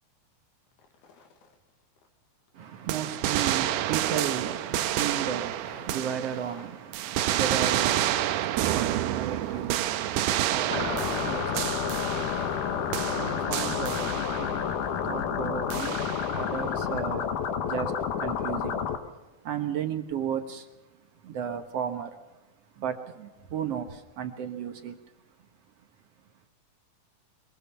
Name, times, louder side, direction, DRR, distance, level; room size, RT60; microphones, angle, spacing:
sound 1, 0.7-1.7 2.0-2.1 2.5-2.6 3.3-14.1, left 5 dB, 80° left, 4.3 m, -53 dB
voice 1, 2.5-18.9 19.4-20.7 21.2-22.2 22.8-25.0, right 8 dB, 65° right, 1.5 m, -35 dB
sound 2, 2.9-6.6 6.9-12.7 12.9-14.6 15.7-16.4, right 12 dB, 85° right, 2.8 m, -29 dB
sound 3, 10.7-19.0, left 8 dB, 60° left, 2.6 m, -30 dB
24.0 x 22.5 x 5.7 m
omnidirectional pair, 4.4 m